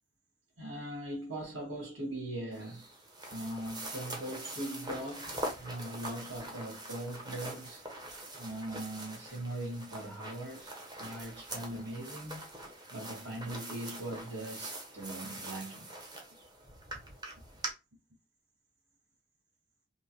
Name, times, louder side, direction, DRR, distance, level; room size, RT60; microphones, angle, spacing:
voice 1, 0.6-2.9 3.3-7.8 8.3-12.5 12.9-15.9, right 1 dB, 60° right, 2.3 m, -40 dB
sound 1, 2.5-17.7, right 1 dB, 20° right, 0.8 m, -44 dB
5.2 x 2.2 x 3.1 m
head